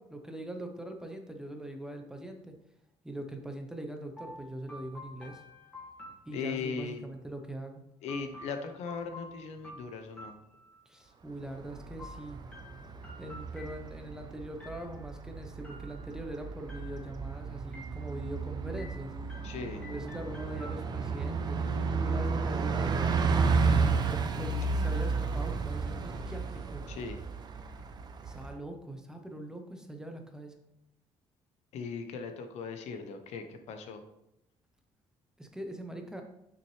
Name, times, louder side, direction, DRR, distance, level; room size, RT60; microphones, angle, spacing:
voice 1, 0.0-2.5 3.0-5.4 6.2-7.8 10.9-12.4 13.2-19.1 19.9-21.6 22.0-26.8 28.2-30.6 35.4-36.2, right 1 dB, 5° right, 4 dB, 0.7 m, -42 dB
sound 1, 4.2-6.9 8.1-11.1 12.0-14.2 14.6-15.2 15.6-16.3 16.7-17.3 17.7-18.4 18.8-21.3, left 1 dB, 15° left, 1.7 m, -50 dB
voice 2, 6.3-7.0 8.0-10.4 19.4-19.8 24.6-24.7 26.9-27.2 31.7-34.0, left 5 dB, 85° left, 7 dB, 0.8 m, -38 dB
Bus, 11.5-28.5, right 4 dB, 40° right, 0.6 m, -32 dB
6.4 x 5.9 x 3.2 m, 0.82 s
cardioid pair, 145°, 11 cm